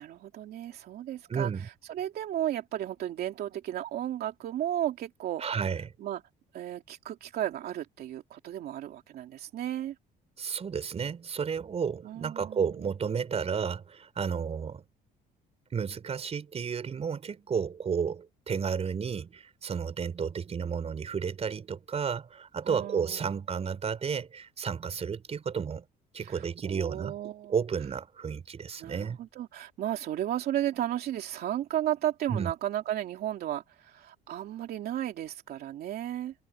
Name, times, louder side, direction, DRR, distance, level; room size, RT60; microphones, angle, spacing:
voice 1, 0.0-5.6 6.0-6.2 6.5-9.9 12.0-12.8 22.6-23.4 26.2-27.5 28.8-36.3, right 12 dB, 65° right, 2.8 m, -34 dB
voice 2, 1.3-1.7 5.4-5.9 10.4-14.8 15.7-25.8 26.1-27.1 27.5-29.2 32.3-32.5, right 6 dB, 40° right, 4.9 m, -32 dB
cardioid pair, 110°, 17 cm